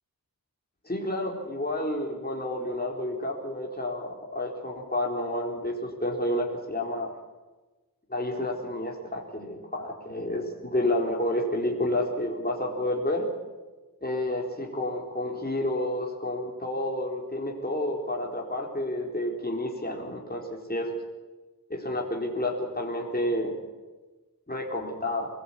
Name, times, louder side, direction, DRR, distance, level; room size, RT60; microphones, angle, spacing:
voice 1, 0.8-7.1 8.1-13.3 14.0-21.0 21.7-23.5 24.5-25.3, left 1 dB, 25° left, -1 dB, 4.2 m, -30 dB
24.5 x 18.5 x 8.8 m, 1.2 s
wide cardioid pair, 70°, 37 cm